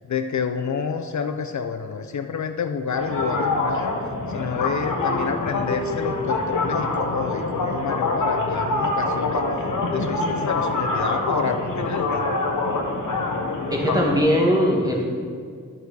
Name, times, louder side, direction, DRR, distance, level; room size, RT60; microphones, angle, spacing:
voice 1, 0.1-3.9 4.3-12.2 13.8-14.1, left 6 dB, 60° left, 7 dB, 0.5 m, -29 dB
sound 1, 2.9-14.2, left 2 dB, 80° left, 1.3 m, -25 dB
voice 2, 13.7-15.0, equal, 10° right, -2 dB, 1.7 m, -20 dB
11.5 x 6.5 x 4.1 m, 2.1 s
wide cardioid pair, 95°, 32 cm